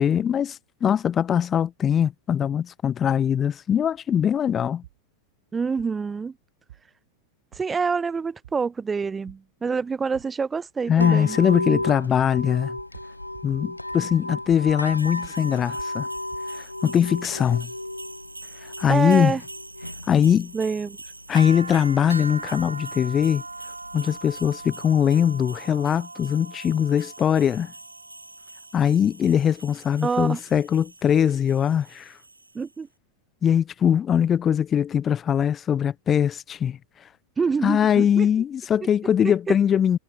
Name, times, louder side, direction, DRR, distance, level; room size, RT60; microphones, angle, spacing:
voice 1, 0.0-4.8 10.9-12.8 13.4-16.1 16.5-17.7 18.8-19.3 20.1-20.5 21.3-23.4 23.9-27.7 28.7-32.1 33.4-36.8 37.6-40.0, left 8 dB, 25° left, 0.5 m, -21 dB
sound 1, 4.8-5.0 5.8-5.9 6.7-6.8 7.5-7.6 8.4-8.6 9.3-9.4 10.1-10.3 11.0-11.1 11.8-11.9 12.2-12.5 12.8-13.1 13.3-13.6 13.9-14.8 15.0-16.4, right 14 dB, 55° right, 1.6 m, -46 dB
voice 2, 5.5-6.3 7.5-11.4 18.9-19.4 20.5-21.0 30.0-30.4 32.5-32.9 37.4-38.3 39.2-39.6, right 5 dB, 15° right, 0.9 m, -26 dB
sound 2, 11.0-25.0, left 1 dB, 85° left, 1.9 m, -35 dB
sound 3, 15.0-32.7, right 2 dB, 80° right, 1.1 m, -41 dB
figure-of-eight pair, 90°, 0 cm